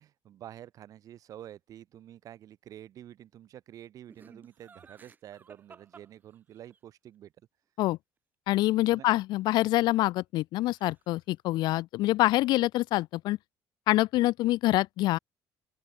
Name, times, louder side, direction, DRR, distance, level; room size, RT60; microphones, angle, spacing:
voice 1, 0.0-7.3 8.9-9.1, right 11 dB, 50° right, 6.0 m, -48 dB
Laughter, 4.1-6.8 9.6-10.4 10.6-11.2, right 5 dB, 25° right, 4.4 m, -55 dB
voice 2, 8.5-13.4 13.9-15.2, left 17 dB, 70° left, 1.5 m, -26 dB
open air
cardioid pair, 150°, 8 cm